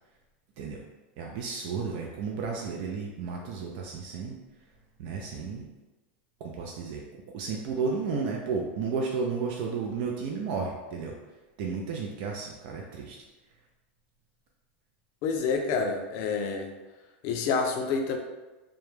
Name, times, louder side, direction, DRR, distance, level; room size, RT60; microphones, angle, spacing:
voice 1, 1.2-4.4 5.0-5.7 6.4-11.2 11.6-13.2, right 5 dB, 55° right, 0 dB, 0.4 m, -33 dB
voice 2, 15.2-16.7 17.2-18.2, left 5 dB, 50° left, 4 dB, 0.4 m, -28 dB
2.2 x 2.0 x 3.0 m, 1.1 s
supercardioid pair, 135°, 6 cm